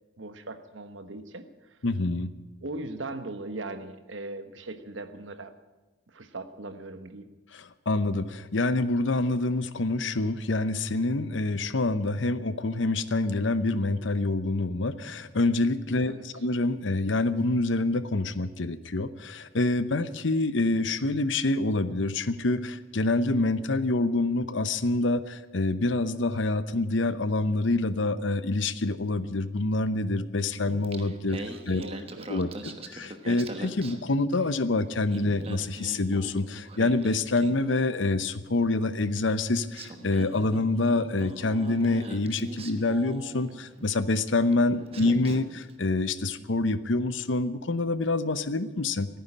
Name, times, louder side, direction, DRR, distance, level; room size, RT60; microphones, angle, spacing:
voice 1, 0.2-1.5 2.6-5.5 6.1-7.3 16.0-16.2 31.3-32.9 44.8-45.1, right 2 dB, 75° right, 10 dB, 1.2 m, -40 dB
voice 2, 1.8-2.3 7.5-31.4 31.7-31.8 32.3-49.1, left 2 dB, 70° left, 13 dB, 0.8 m, -26 dB
Singing, 30.7-34.6 34.9-38.2 39.2-39.3 39.7-43.9 44.5-44.6 44.9-45.7, right 1 dB, 30° right, 1.1 m, -42 dB
15.0 x 9.5 x 9.8 m, 1.2 s
head